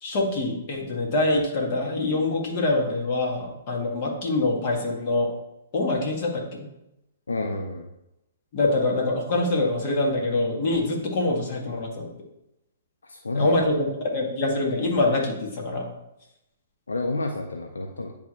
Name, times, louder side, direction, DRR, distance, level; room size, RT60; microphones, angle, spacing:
voice 1, 0.0-5.3 5.7-6.7 8.5-12.1 13.3-15.9, left 2 dB, 45° left, -1 dB, 2.1 m, -25 dB
voice 2, 7.3-7.9 13.0-13.8 16.9-18.1, left 2 dB, 85° left, 2 dB, 0.7 m, -30 dB
10.0 x 3.6 x 3.2 m, 0.86 s
hypercardioid pair, 125°, 0 cm